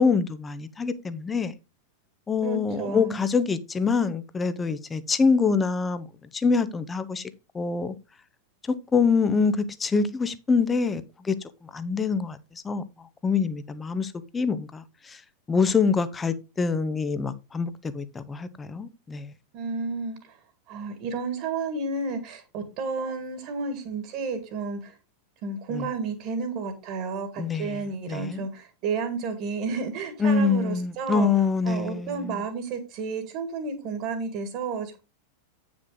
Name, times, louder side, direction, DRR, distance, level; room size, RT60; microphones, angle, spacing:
voice 1, 0.0-1.5 2.3-6.1 6.3-7.3 7.5-7.9 8.6-11.4 11.7-12.4 12.6-12.8 13.2-15.2 15.5-19.3 25.7-25.9 27.4-28.5 30.2-32.4, left 5 dB, 15° left, 0.9 m, -25 dB
voice 2, 2.4-3.2 19.5-20.4 20.7-24.9 25.4-31.3 31.6-35.0, right 4 dB, 45° right, 1.8 m, -31 dB
9.1 x 6.1 x 3.9 m
figure-of-eight pair, 90°, 0 cm